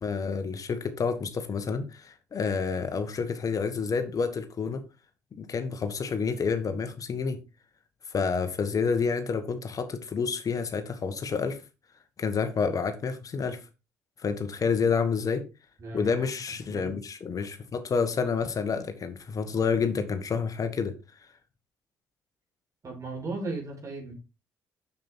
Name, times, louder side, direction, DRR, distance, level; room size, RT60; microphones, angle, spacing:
voice 1, 0.0-4.8 5.3-7.4 8.1-11.6 12.2-13.6 14.2-15.4 15.9-20.9, left 5 dB, 50° left, 1.6 m, -29 dB
voice 2, 15.8-16.3 16.7-16.9 22.8-24.1, right 2 dB, 45° right, 5.0 m, -36 dB
7.4 x 7.4 x 4.5 m
supercardioid pair, 60°, 8 cm